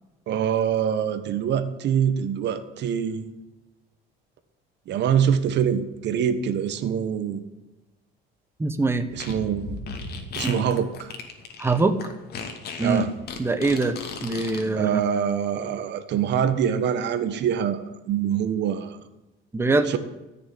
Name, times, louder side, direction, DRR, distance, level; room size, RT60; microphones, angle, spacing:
voice 1, 0.3-3.3 4.9-7.4 9.1-9.8 10.4-11.1 12.8-13.1 14.8-19.0 19.9-20.0, right 8 dB, 60° right, 11 dB, 1.5 m, -24 dB
voice 2, 8.6-9.1 10.4-10.7 11.6-12.1 12.8-13.0 13.4-15.0 19.5-20.0, right 3 dB, 10° right, 9 dB, 1.1 m, -23 dB
Fart, 9.1-14.6, left 5 dB, 50° left, 2.5 m, -35 dB
14.0 x 6.8 x 9.7 m, 1.0 s
cardioid pair, 120°, 20 cm